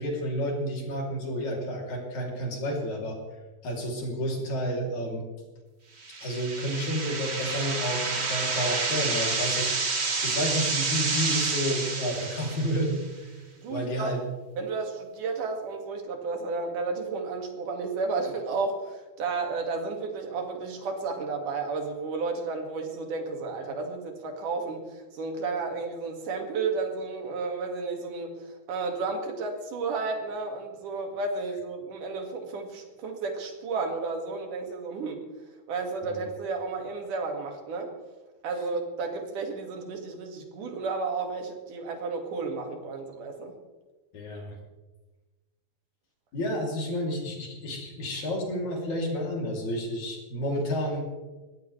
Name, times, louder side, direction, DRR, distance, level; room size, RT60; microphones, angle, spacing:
voice 1, 0.0-3.2 3.6-5.2 6.2-13.3 13.7-14.2 36.0-36.2 44.1-44.6 46.3-51.0, equal, 65° left, -1 dB, 4.5 m, -30 dB
sound 1, 6.0-13.0, right 4 dB, 40° right, 0.9 m, -29 dB
voice 2, 13.6-14.1 14.6-35.2 35.7-37.9 38.4-43.5, right 4 dB, 90° right, 3 dB, 3.7 m, -32 dB
22.0 x 16.0 x 3.3 m, 1.2 s
omnidirectional pair, 3.6 m